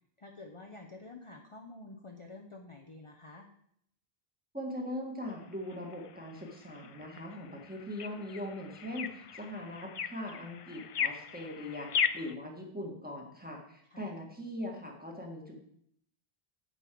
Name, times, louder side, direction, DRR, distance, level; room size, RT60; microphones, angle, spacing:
voice 1, 0.2-3.5 13.9-14.1, left 2 dB, 35° left, 2 dB, 0.8 m, -49 dB
voice 2, 4.5-15.6, left 1 dB, 10° right, 0 dB, 1.7 m, -41 dB
sound 1, 5.3-12.3, left 7 dB, 50° left, 0.4 m, -38 dB
8.3 x 5.5 x 7.6 m, 0.70 s
omnidirectional pair, 1.0 m